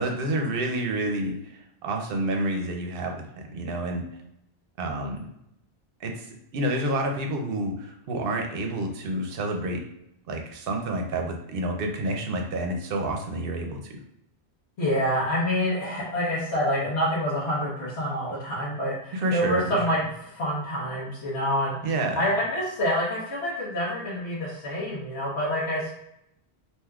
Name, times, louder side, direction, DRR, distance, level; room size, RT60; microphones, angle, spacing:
voice 1, 0.0-4.0 4.8-5.3 6.0-9.8 10.3-13.9 19.1-19.8 21.8-22.3, right 1 dB, 65° right, 2 dB, 0.7 m, -29 dB
voice 2, 14.8-20.0 20.3-21.9 22.2-25.9, equal, 70° left, -7 dB, 1.1 m, -27 dB
3.4 x 2.8 x 2.3 m, 0.81 s
omnidirectional pair, 1.1 m